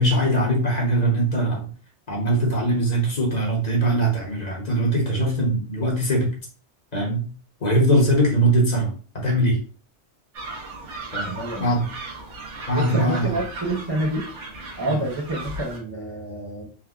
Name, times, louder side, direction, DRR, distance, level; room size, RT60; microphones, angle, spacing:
voice 1, 0.0-1.7 2.1-6.3 6.9-7.3 7.6-9.6 11.1-11.3 11.6-11.8 12.7-13.3 14.9-15.0, right 1 dB, 40° left, -3 dB, 0.8 m, -21 dB
sound 1, 10.3-15.8, right 2 dB, 85° right, 1.1 m, -36 dB
voice 2, 11.2-11.7 12.7-14.3 14.8-16.7, right 1 dB, 40° right, -4 dB, 0.3 m, -28 dB
3.4 x 2.2 x 2.3 m, 0.39 s
omnidirectional pair, 1.2 m